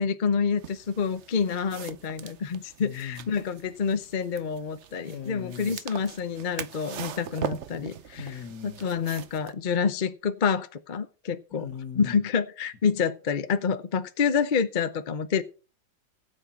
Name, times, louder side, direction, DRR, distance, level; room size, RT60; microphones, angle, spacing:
voice 1, 0.0-8.3 8.6-11.7 12.0-15.4, left 6 dB, 45° left, 0.6 m, -28 dB
sound 1, 0.6-9.5, right 9 dB, 60° right, 0.7 m, -41 dB
voice 2, 2.8-3.3 5.1-5.8 8.1-8.8 11.6-12.2, left 8 dB, 65° left, 1.8 m, -39 dB
16.5 x 7.9 x 4.5 m
omnidirectional pair, 2.0 m